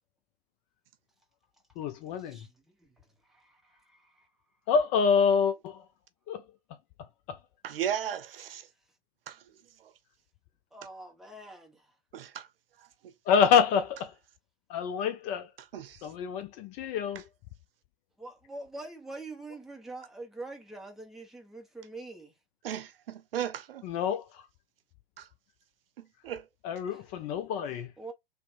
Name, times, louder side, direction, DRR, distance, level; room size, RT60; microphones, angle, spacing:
voice 1, 1.8-2.5 4.7-5.9 6.3-6.4 7.0-7.4 13.3-14.2 14.7-15.5 16.0-17.3 23.8-24.5 26.6-27.9, left 6 dB, 25° left, 0.4 m, -27 dB
voice 2, 2.3-2.9 3.2-4.3 10.7-11.9 18.2-22.3 26.9-27.0 28.0-28.1, right 2 dB, ahead, 1.0 m, -45 dB
voice 3, 7.6-8.7 9.3-9.4 12.1-12.5 13.0-13.1 15.7-16.0 22.6-23.8 25.2-25.3 26.0-26.4, right 10 dB, 70° right, 0.8 m, -35 dB
3.2 x 2.9 x 4.1 m
hypercardioid pair, 125°, 30 cm